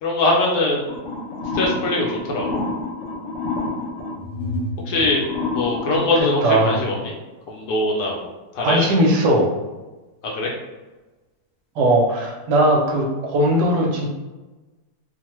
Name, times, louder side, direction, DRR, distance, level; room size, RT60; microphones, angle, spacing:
voice 1, 0.0-0.8 1.5-2.6 4.9-5.2 5.5-6.9 7.5-8.9 10.2-10.5, left 2 dB, 70° left, -2 dB, 1.0 m, -22 dB
sound 1, 0.9-6.2, left 2 dB, 85° left, 0.6 m, -28 dB
voice 2, 6.4-6.8 8.6-9.5 11.8-14.1, right 1 dB, 75° right, -1 dB, 1.2 m, -18 dB
2.9 x 2.1 x 2.9 m, 1.2 s
omnidirectional pair, 1.9 m